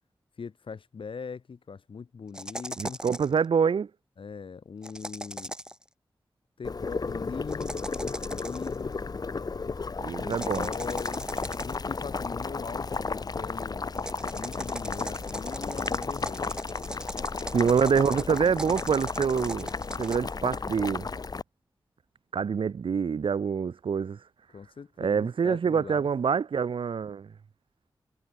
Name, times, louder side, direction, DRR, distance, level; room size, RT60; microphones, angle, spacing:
voice 1, 0.4-3.0 4.2-5.5 6.6-7.9 8.2-9.0 10.2-11.3 11.6-13.9 14.4-16.6 24.5-26.1, left 5 dB, 80° left, 2.4 m, -40 dB
sound 1, 2.3-3.4 4.8-5.8 7.5-8.7 10.3-11.9 13.9-20.2, right 1 dB, 10° right, 1.5 m, -39 dB
voice 2, 2.8-3.9 10.0-10.7 17.5-19.7 20.0-21.1 22.3-24.2 25.0-27.3, right 6 dB, 85° right, 0.7 m, -26 dB
Boiling, 6.6-21.4, left 4 dB, 50° left, 0.8 m, -33 dB
wide cardioid pair, 75°, 9 cm